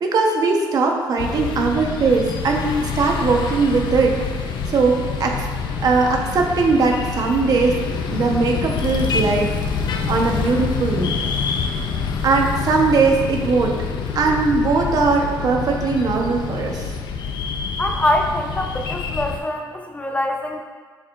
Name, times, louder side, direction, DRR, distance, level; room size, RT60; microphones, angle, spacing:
voice 1, 0.0-5.5 5.8-7.8 8.1-9.5 10.1-11.1 12.2-13.8 14.1-16.9, right 4 dB, 55° right, 1 dB, 1.0 m, -20 dB
sound 1, 1.2-19.4, left 5 dB, 70° left, 0.6 m, -26 dB
voice 2, 17.8-20.6, left 1 dB, 15° left, 3 dB, 0.6 m, -23 dB
11.0 x 4.7 x 2.5 m, 1.5 s
cardioid pair, 110°, 8 cm